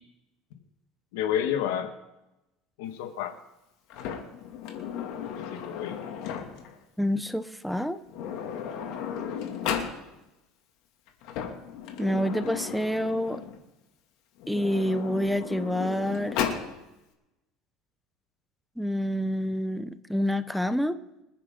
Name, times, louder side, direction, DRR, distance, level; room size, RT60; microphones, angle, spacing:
voice 1, 1.1-1.9 2.8-3.3 5.4-6.0 9.4-9.6, left 10 dB, 85° left, 7 dB, 1.6 m, -30 dB
Sliding door, 3.9-6.8 7.7-7.8 8.1-10.0 11.1-13.6 14.4-16.7, left 8 dB, 65° left, 2.5 m, -35 dB
voice 2, 7.0-8.0 12.0-13.4 14.5-16.4 18.8-21.0, equal, ahead, 12 dB, 0.7 m, -27 dB
26.5 x 9.5 x 3.9 m, 0.96 s
supercardioid pair, 130°, 0 cm